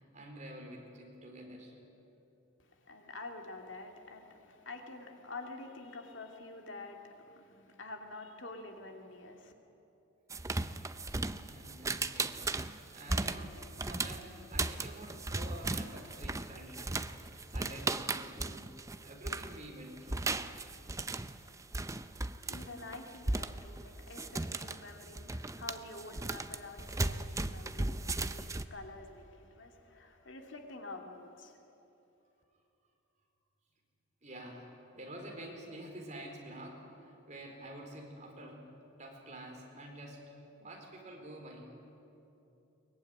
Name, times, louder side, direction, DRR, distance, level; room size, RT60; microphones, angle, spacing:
voice 1, 0.0-1.8 11.4-13.6 13.8-17.2 17.4-18.7 19.0-20.3 34.2-38.7 39.0-40.3 40.6-41.7, right 1 dB, 35° right, 1 dB, 4.3 m, -48 dB
voice 2, 2.6-9.5 22.4-31.6, left 2 dB, 60° left, 3 dB, 2.5 m, -48 dB
sound 1, 10.3-19.6 20.0-28.7, right 2 dB, 15° right, 0.6 m, -36 dB
22.5 x 21.0 x 9.6 m, 2.9 s
head